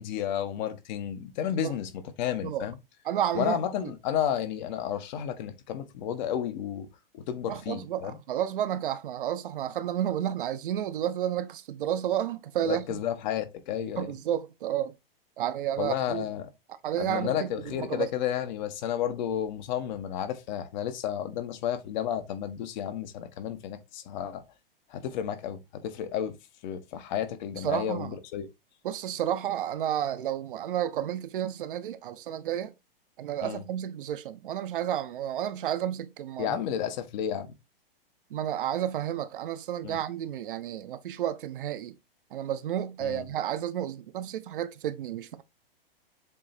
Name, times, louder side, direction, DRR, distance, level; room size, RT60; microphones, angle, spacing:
voice 1, 0.0-2.8 3.3-6.9 7.1-8.2 12.6-14.1 15.8-16.5 17.0-24.4 24.9-26.3 26.6-28.5 33.4-33.6 36.4-37.5 39.8-40.0 43.0-43.2, left 9 dB, 50° left, 1.3 m, -32 dB
voice 2, 3.0-3.9 7.5-13.0 14.0-14.9 15.4-16.3 16.8-18.1 27.6-28.2 28.8-32.7 33.2-36.6 38.3-42.0 42.3-45.4, right 11 dB, 60° right, 0.9 m, -31 dB
7.5 x 3.2 x 4.4 m
hypercardioid pair, 110°, 29 cm